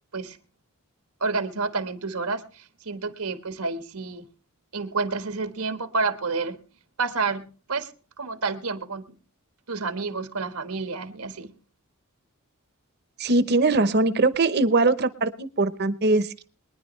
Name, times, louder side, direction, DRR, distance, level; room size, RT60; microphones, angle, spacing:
voice 1, 1.2-4.2 4.7-6.6 7.0-7.9 8.2-9.2 9.7-11.5, right 4 dB, 85° right, 9 dB, 1.4 m, -29 dB
voice 2, 13.2-16.4, right 3 dB, 45° right, 14 dB, 0.8 m, -21 dB
23.0 x 10.5 x 3.2 m, 0.37 s
head